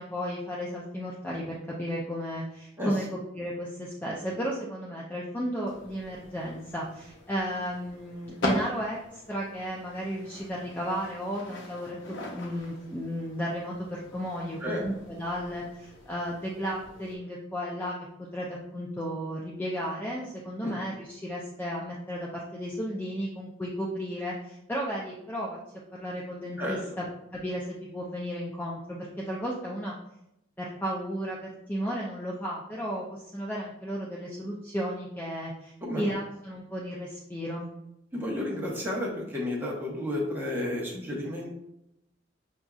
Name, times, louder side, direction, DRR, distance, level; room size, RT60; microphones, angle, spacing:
voice 1, 0.0-25.6 25.9-27.0 27.3-29.9 30.6-37.7, equal, 10° left, -4 dB, 0.4 m, -34 dB
sound 1, 5.7-17.1, left 1 dB, 80° left, 0.8 m, -40 dB
voice 2, 38.1-41.5, left 1 dB, 10° right, -4 dB, 0.9 m, -32 dB
5.9 x 2.6 x 2.3 m, 0.81 s
head